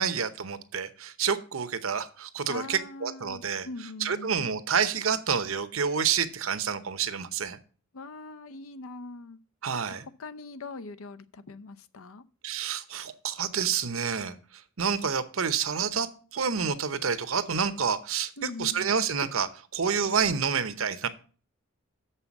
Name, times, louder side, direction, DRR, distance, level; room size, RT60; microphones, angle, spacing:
voice 1, 0.0-3.7 4.0-7.6 9.6-10.0 12.4-21.1, right 6 dB, 75° right, 12 dB, 0.8 m, -28 dB
voice 2, 2.5-4.6 7.9-9.4 9.9-12.2 18.4-19.0, left 3 dB, 85° left, 11 dB, 0.6 m, -42 dB
7.1 x 5.6 x 7.2 m, 0.39 s
head